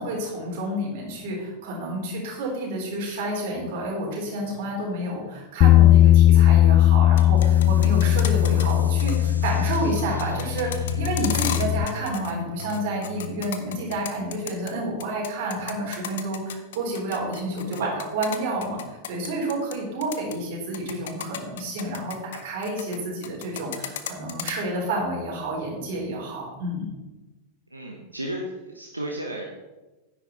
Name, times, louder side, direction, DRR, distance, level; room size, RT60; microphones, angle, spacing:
voice 1, 0.0-26.9, right 1 dB, 50° right, -2 dB, 3.9 m, -30 dB
Bass guitar, 5.6-11.9, left 13 dB, 35° left, 0.3 m, -18 dB
sound 1, 7.0-8.7 9.0-9.2 9.4-12.3 12.6-14.7 15.0-19.7 20.0-20.3 20.7-23.0 23.2-24.5, left 10 dB, 60° left, 0.8 m, -34 dB
sound 2, 7.4-14.6, left 1 dB, 85° left, 0.8 m, -36 dB
voice 2, 17.6-18.0 27.7-29.4, right 1 dB, 85° right, 0 dB, 1.1 m, -33 dB
10.0 x 8.6 x 4.0 m, 1.1 s
figure-of-eight pair, 90°, 0 cm